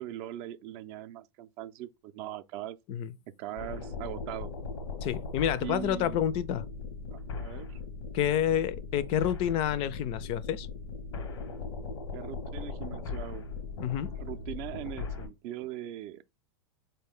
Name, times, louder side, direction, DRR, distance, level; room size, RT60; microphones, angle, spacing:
voice 1, 0.0-2.8 3.4-4.5 5.6-6.2 7.1-7.8 12.1-13.5 14.2-16.2, right 13 dB, 50° right, 0.4 m, -40 dB
sound 1, 3.6-15.3, left 4 dB, 90° left, 0.8 m, -39 dB
voice 2, 5.0-6.6 8.1-10.7 13.8-14.1, left 10 dB, 45° left, 0.4 m, -29 dB
3.9 x 2.2 x 3.5 m
supercardioid pair, 125°, 14 cm